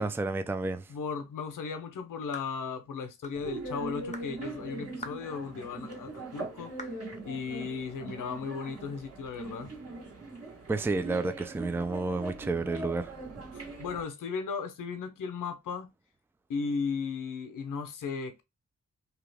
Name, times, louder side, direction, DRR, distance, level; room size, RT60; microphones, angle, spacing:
voice 1, 0.0-0.9 10.7-13.1, right 3 dB, 5° right, 0.4 m, -30 dB
voice 2, 0.9-6.7 7.2-9.7 13.5-15.9 16.5-18.4, left 5 dB, 75° left, 0.8 m, -36 dB
sound 1, 2.3-2.6 3.2-3.4 4.1-4.3 5.0-5.3 5.9-6.0 6.8-7.0, left 3 dB, 25° left, 0.7 m, -43 dB
sound 2, 3.3-14.0, right 2 dB, 50° right, 1.6 m, -41 dB
2.9 x 2.4 x 3.4 m
cardioid pair, 60°, 32 cm